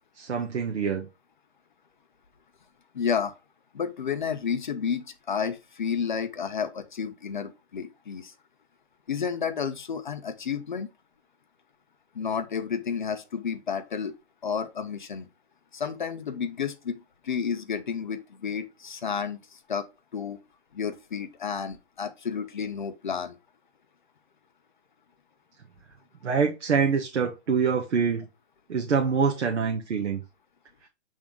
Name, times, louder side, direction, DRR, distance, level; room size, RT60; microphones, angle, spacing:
voice 1, 0.2-1.1 26.2-28.3 28.7-30.2, right 6 dB, 80° right, 1.3 m, -25 dB
voice 2, 2.9-3.4 3.7-8.3 9.1-10.9 12.1-14.1 14.4-15.3 15.7-19.9 20.1-20.4 20.7-23.4, left 6 dB, 45° left, 0.6 m, -31 dB
7.4 x 3.6 x 3.6 m
hypercardioid pair, 175°, 35 cm